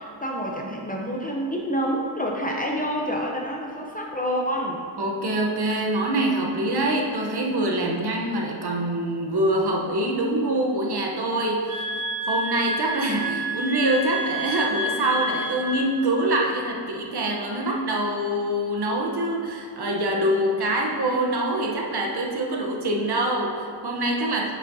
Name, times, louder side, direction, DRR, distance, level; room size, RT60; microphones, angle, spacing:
voice 1, 0.0-4.8, equal, 15° left, -1 dB, 0.6 m, -28 dB
voice 2, 5.0-11.8 12.3-24.5, right 1 dB, 50° right, 0 dB, 0.9 m, -25 dB
sound 1, 11.7-16.0, right 1 dB, 65° right, 1.2 m, -29 dB
9.0 x 6.5 x 2.7 m, 2.2 s
wide cardioid pair, 140°, 50 cm